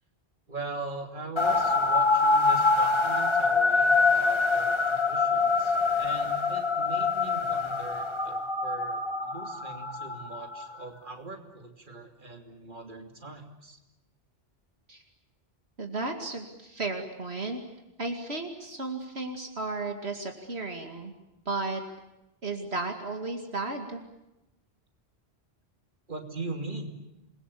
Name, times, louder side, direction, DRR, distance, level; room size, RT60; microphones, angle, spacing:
voice 1, 0.5-13.8 26.1-26.9, right 3 dB, 45° right, 4 dB, 3.1 m, -41 dB
sound 1, 1.4-10.8, left 4 dB, 25° left, 1.9 m, -25 dB
voice 2, 15.8-17.6 18.0-21.1 21.5-21.8 22.4-24.0, right 3 dB, 70° right, 3 dB, 2.6 m, -34 dB
28.5 x 21.5 x 8.5 m, 0.93 s
omnidirectional pair, 1.1 m